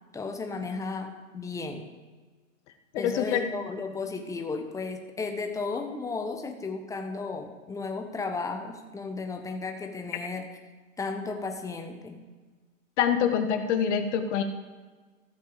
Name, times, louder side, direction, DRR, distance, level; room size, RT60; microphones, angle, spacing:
voice 1, 0.1-1.9 3.0-10.5 11.0-12.2, left 4 dB, 10° left, 5 dB, 1.0 m, -34 dB
voice 2, 2.9-3.5 13.0-14.4, left 8 dB, 55° left, 7 dB, 1.4 m, -25 dB
14.5 x 7.5 x 5.0 m, 1.4 s
hypercardioid pair, 130°, 41 cm